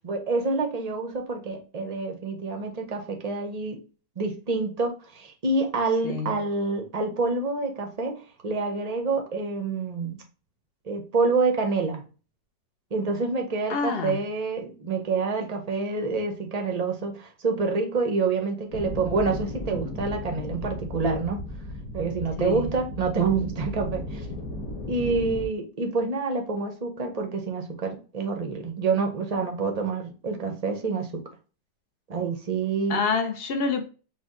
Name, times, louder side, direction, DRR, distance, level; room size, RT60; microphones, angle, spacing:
voice 1, 0.0-3.8 4.2-8.1 8.4-10.2 10.9-12.0 12.9-21.4 21.9-24.2 24.9-31.1 32.1-33.0, right 4 dB, 50° right, 0.4 m, -27 dB
voice 2, 13.7-14.2 22.4-22.7 32.9-33.8, left 5 dB, 75° left, 0.5 m, -27 dB
sound 1, 18.7-25.5, left 1 dB, 50° left, 1.7 m, -35 dB
5.7 x 2.2 x 3.7 m
omnidirectional pair, 1.9 m